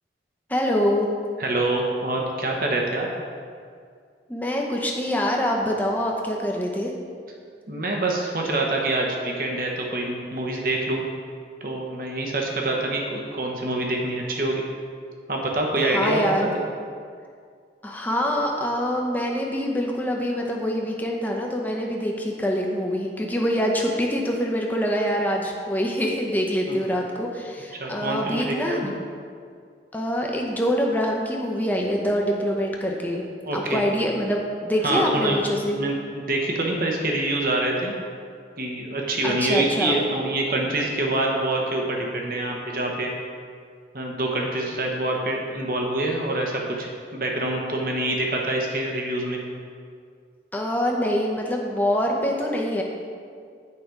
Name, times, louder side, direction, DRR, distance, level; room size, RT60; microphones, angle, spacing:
voice 1, 0.5-1.1 4.3-6.9 15.9-16.5 17.8-28.9 29.9-33.2 33.5-35.8 39.2-40.0 50.5-52.8, equal, 10° left, -1 dB, 0.7 m, -25 dB
voice 2, 1.4-3.1 7.7-11.0 11.6-14.6 15.3-16.5 26.7-26.8 27.7-28.9 33.4-33.8 34.8-35.4 35.7-37.9 38.6-43.1 43.9-49.4, right 2 dB, 50° right, 0 dB, 1.1 m, -26 dB
8.7 x 5.1 x 4.6 m, 2.2 s
head